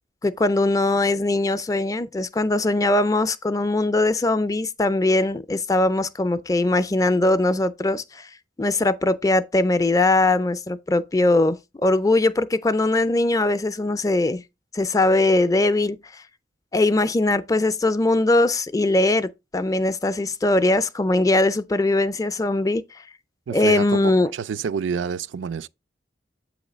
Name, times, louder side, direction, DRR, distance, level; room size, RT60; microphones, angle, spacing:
voice 1, 0.2-8.3 8.6-14.4 14.7-16.2 16.7-22.8 23.5-24.3, left 2 dB, 20° left, 0.4 m, -21 dB
voice 2, 23.5-25.7, right 6 dB, 85° right, 0.4 m, -28 dB
8.0 x 3.1 x 5.0 m
head